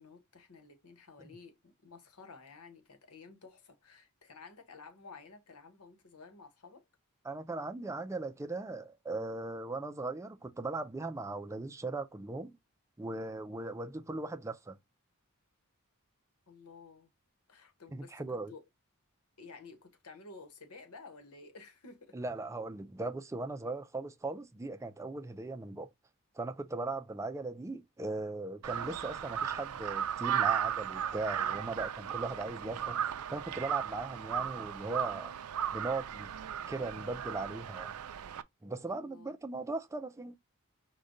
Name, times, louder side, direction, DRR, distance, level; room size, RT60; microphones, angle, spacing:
voice 1, 0.0-6.9 16.5-17.1 17.5-18.6 19.4-22.2 38.9-39.3, left 4 dB, 85° left, 1.1 m, -53 dB
voice 2, 7.2-12.6 13.0-14.8 17.9-18.5 22.1-25.9 26.4-35.3 35.7-36.3 36.7-37.9 38.6-40.4, right 2 dB, 15° right, 0.4 m, -38 dB
Crow, 28.6-38.4, right 9 dB, 80° right, 0.4 m, -36 dB
5.0 x 2.2 x 3.8 m
head